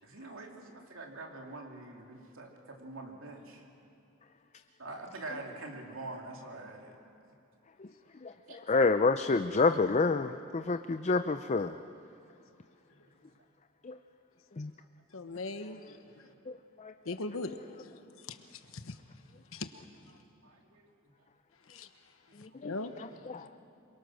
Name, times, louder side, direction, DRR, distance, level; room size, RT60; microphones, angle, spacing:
voice 1, 0.0-3.6 4.8-6.9 8.4-8.9 15.2-15.4 18.7-18.8 20.1-20.9 22.3-22.6 22.9-23.2, right 2 dB, 75° right, 1 dB, 3.0 m, -45 dB
voice 2, 8.7-11.7 13.9-14.0 14.6-14.7 22.6-22.7 23.3-23.4, left 3 dB, 35° left, 9 dB, 0.5 m, -27 dB
voice 3, 15.1-16.0 17.1-17.6 18.8-18.9 19.5-19.7 21.7-21.9 22.6-22.9, left 2 dB, 75° left, 8 dB, 1.1 m, -38 dB
27.0 x 23.5 x 6.3 m, 2.6 s
head